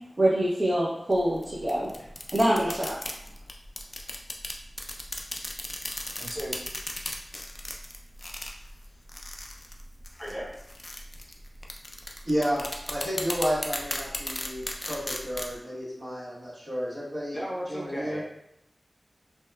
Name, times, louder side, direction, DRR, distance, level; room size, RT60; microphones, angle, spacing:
voice 1, 0.2-1.9 2.3-3.0, right 1 dB, 45° right, -6 dB, 0.5 m, -25 dB
sound 1, 1.1-15.6, left 1 dB, 40° left, 0.3 m, -37 dB
voice 2, 6.2-6.6 10.2-10.5 17.3-18.2, equal, 10° left, -5 dB, 0.6 m, -35 dB
voice 3, 12.2-12.6 12.9-17.4 17.7-18.2, equal, 65° right, -10 dB, 1.3 m, -31 dB
2.8 x 2.1 x 2.2 m, 0.82 s
wide cardioid pair, 55°, 0 cm